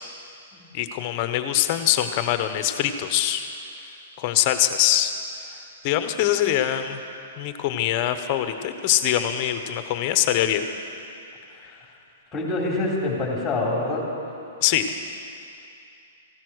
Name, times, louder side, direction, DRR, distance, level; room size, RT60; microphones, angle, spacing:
voice 1, 0.7-3.5 4.2-5.1 5.8-7.0 7.4-10.7 14.6-14.9, left 12 dB, 40° left, 9 dB, 1.0 m, -23 dB
voice 2, 12.3-14.0, left 2 dB, 15° left, -2 dB, 3.8 m, -25 dB
16.0 x 12.5 x 6.4 m, 2.6 s
hypercardioid pair, 140°, 0 cm